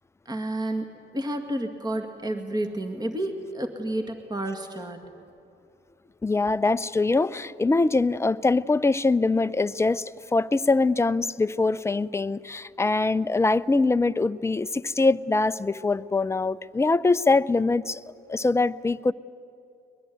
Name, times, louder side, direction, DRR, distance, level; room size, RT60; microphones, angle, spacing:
voice 1, 0.3-5.1, right 1 dB, 20° right, 5 dB, 2.0 m, -30 dB
voice 2, 6.2-18.0 18.3-19.1, left 3 dB, 15° left, 14 dB, 0.5 m, -23 dB
22.0 x 21.0 x 9.4 m, 2.6 s
cardioid pair, 90°, 20 cm